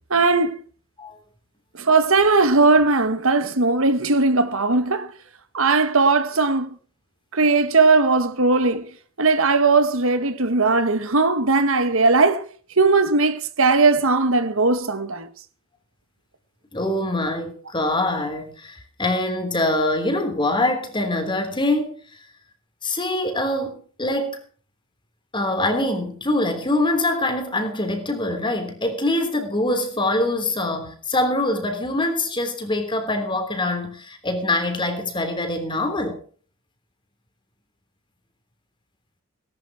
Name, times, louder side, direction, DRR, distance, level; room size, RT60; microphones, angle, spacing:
voice 1, 0.1-0.6 1.7-5.1 5.5-6.8 7.3-8.9 9.2-12.5 12.8-15.3, right 3 dB, 70° right, 1.5 m, -18 dB
voice 2, 16.7-22.0 22.8-24.4 25.3-36.2, left 1 dB, 20° left, 3.3 m, -24 dB
18.0 x 11.5 x 4.9 m
head